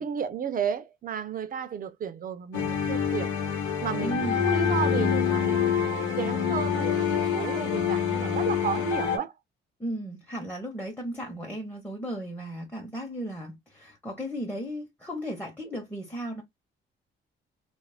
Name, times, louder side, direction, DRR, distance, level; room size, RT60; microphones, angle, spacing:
voice 1, 0.0-3.3 3.8-9.3, right 7 dB, 45° right, 0.5 m, -33 dB
sound 1, 2.5-9.2, left 7 dB, 85° left, 1.0 m, -26 dB
voice 2, 4.0-4.4 9.8-16.4, right 1 dB, 5° left, 0.9 m, -35 dB
2.4 x 2.0 x 3.2 m
cardioid pair, 90°, 20 cm